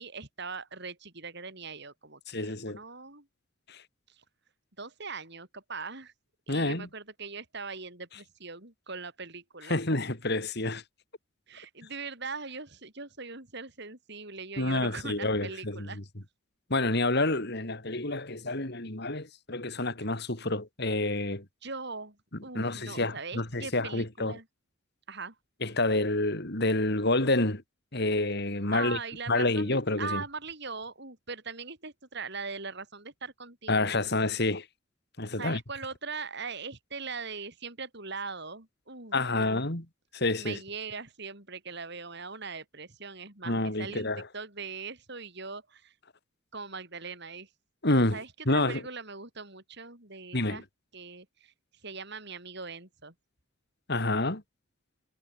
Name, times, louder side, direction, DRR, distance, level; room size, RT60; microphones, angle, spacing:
voice 1, 0.0-3.3 4.1-4.2 4.8-6.1 6.5-9.8 11.5-16.0 21.6-22.2 22.4-24.5 25.1-25.3 28.7-34.0 35.4-39.6 40.4-45.9 46.5-47.5 47.9-50.6 50.9-51.5 51.8-53.1, right 4 dB, 55° right, 7.7 m, -41 dB
voice 2, 2.3-2.8 3.7-3.8 6.5-6.9 9.7-10.8 14.6-16.0 16.7-21.4 22.5-24.3 25.6-27.6 27.9-29.0 29.3-30.2 33.7-34.7 35.2-35.6 39.1-39.8 40.1-40.6 43.5-44.2 47.8-48.2 48.5-48.8 50.3-50.6 53.9-54.4, left 2 dB, 55° left, 3.8 m, -28 dB
head